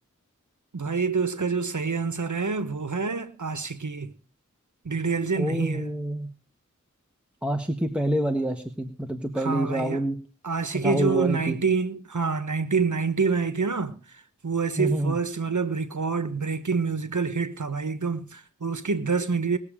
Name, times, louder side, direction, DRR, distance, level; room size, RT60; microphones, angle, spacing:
voice 1, 0.7-4.1 4.8-5.9 9.3-10.0 10.4-14.0 14.4-19.6, right 5 dB, 70° right, 1.2 m, -27 dB
voice 2, 5.4-6.3 7.4-10.2 10.7-11.6 14.8-15.2, right 1 dB, 5° right, 1.4 m, -27 dB
20.0 x 7.4 x 4.9 m
wide cardioid pair, 40°, 31 cm